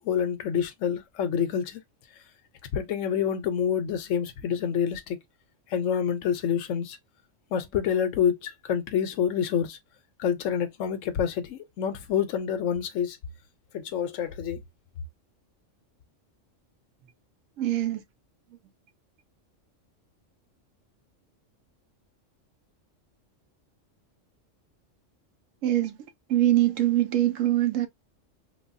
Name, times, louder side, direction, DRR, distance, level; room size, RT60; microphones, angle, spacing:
voice 1, 0.0-1.8 2.7-5.2 5.7-7.0 7.5-9.8 10.2-13.2 13.7-14.6, left 8 dB, 80° left, 1.0 m, -27 dB
voice 2, 17.6-18.0 25.6-26.0 26.3-27.9, right 13 dB, 90° right, 1.0 m, -23 dB
3.2 x 2.2 x 2.5 m
omnidirectional pair, 1.3 m